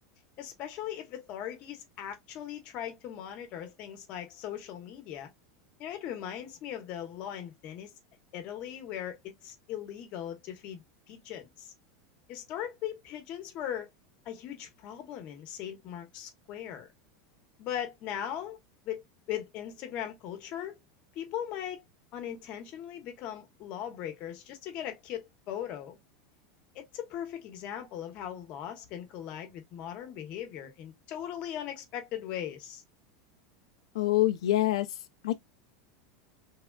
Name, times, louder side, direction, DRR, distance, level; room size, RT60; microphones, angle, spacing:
voice 1, 0.4-5.3 5.8-7.9 8.3-11.7 12.3-13.9 14.2-16.9 17.6-18.6 18.8-19.0 19.3-20.8 21.2-21.8 22.1-26.0 26.7-32.8, left 10 dB, 35° left, 0.8 m, -39 dB
voice 2, 33.9-34.9 35.2-35.4, left 15 dB, 90° left, 0.4 m, -25 dB
3.4 x 2.3 x 2.2 m
supercardioid pair, 165°, 3 cm